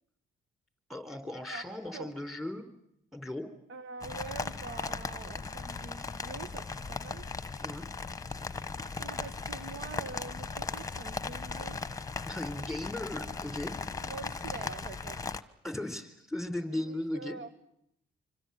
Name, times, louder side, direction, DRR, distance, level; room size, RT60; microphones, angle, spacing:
voice 1, 0.9-2.7 3.1-3.5 7.6-7.9 12.3-13.7 15.6-17.4, left 1 dB, ahead, 7 dB, 4.4 m, -37 dB
voice 2, 3.7-7.3 9.0-11.8 13.9-15.2 16.7-17.5, right 5 dB, 75° right, 12 dB, 1.3 m, -45 dB
sound 1, 4.0-15.4, left 4 dB, 15° left, 1.2 m, -38 dB
26.0 x 25.5 x 8.6 m, 0.77 s
cardioid pair, 90°, 20 cm